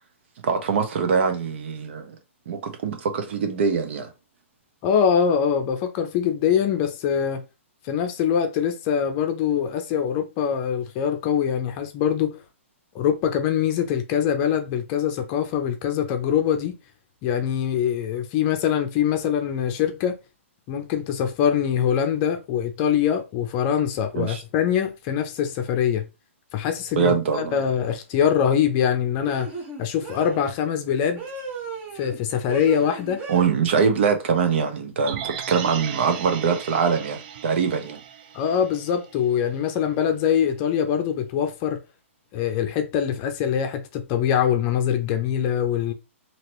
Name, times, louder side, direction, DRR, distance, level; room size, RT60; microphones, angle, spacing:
voice 1, 0.4-2.1 2.5-4.1 24.1-24.4 26.9-27.5 33.3-38.0, right 6 dB, 55° right, 1.0 m, -23 dB
voice 2, 4.8-7.4 7.8-12.4 12.9-16.8 17.2-20.2 20.7-26.0 26.5-29.5 29.8-31.2 31.9-33.2 38.3-41.8 42.3-45.9, left 8 dB, 30° left, 0.6 m, -23 dB
sound 1, 27.5-27.8 29.3-30.4 31.2-32.2 32.5-33.5, right 4 dB, 20° right, 1.0 m, -36 dB
sound 2, 35.0-39.2 39.6-39.7, right 9 dB, 40° right, 0.5 m, -36 dB
2.9 x 2.9 x 3.1 m
hypercardioid pair, 145°, 7 cm